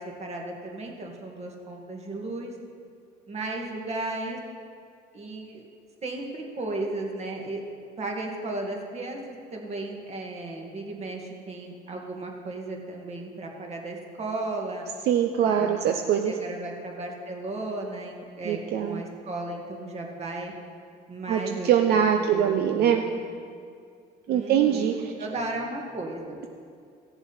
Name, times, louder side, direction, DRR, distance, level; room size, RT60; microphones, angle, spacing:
voice 1, 0.0-2.5 3.3-4.4 5.1-5.7 6.0-7.6 8.0-14.8 15.4-15.9 16.2-20.5 21.1-23.2 24.3-26.4, right 2 dB, 40° right, 1 dB, 2.1 m, -35 dB
voice 2, 15.1-16.3 18.4-19.0 21.3-23.0 24.3-25.1, right 9 dB, 70° right, 4 dB, 0.7 m, -23 dB
15.5 x 7.1 x 5.6 m, 2.2 s
cardioid pair, 110°, 17 cm